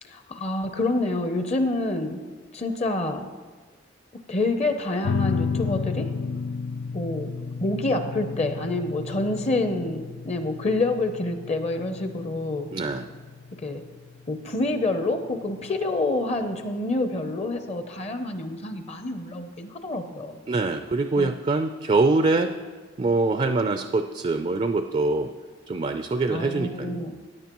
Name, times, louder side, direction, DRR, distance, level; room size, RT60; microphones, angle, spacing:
voice 1, 0.0-2.2 2.5-3.3 4.3-6.1 6.9-7.3 7.6-12.7 13.6-13.8 14.3-20.5 21.2-21.3 26.3-27.1, left 2 dB, 35° left, 7 dB, 0.6 m, -27 dB
sound 1, 5.0-16.0, left 5 dB, 85° left, 0.4 m, -33 dB
voice 2, 12.7-13.1 20.5-22.5 23.0-25.3 25.7-27.2, right 3 dB, 30° right, 8 dB, 0.4 m, -24 dB
16.5 x 9.7 x 3.0 m, 1.4 s
head